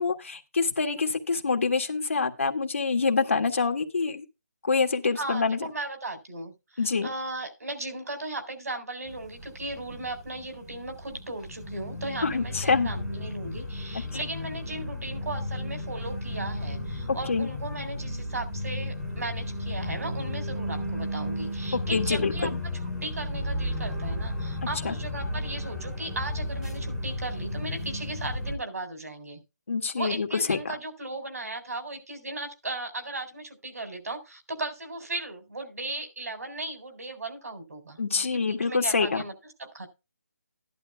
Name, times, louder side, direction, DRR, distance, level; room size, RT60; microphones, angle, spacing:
voice 1, 0.0-4.2 4.6-5.6 6.8-7.1 12.2-12.9 17.1-17.5 21.7-22.5 24.8-24.9 29.7-30.8 38.0-39.2, left 4 dB, 50° left, 1.7 m, -26 dB
voice 2, 5.2-6.5 7.0-22.5 23.0-29.4 30.0-38.0 38.3-39.3 39.6-39.9, right 2 dB, 65° right, 4.0 m, -36 dB
sound 1, 9.1-28.6, left 1 dB, 5° right, 1.4 m, -34 dB
14.0 x 11.5 x 2.3 m
hypercardioid pair, 175°, 9 cm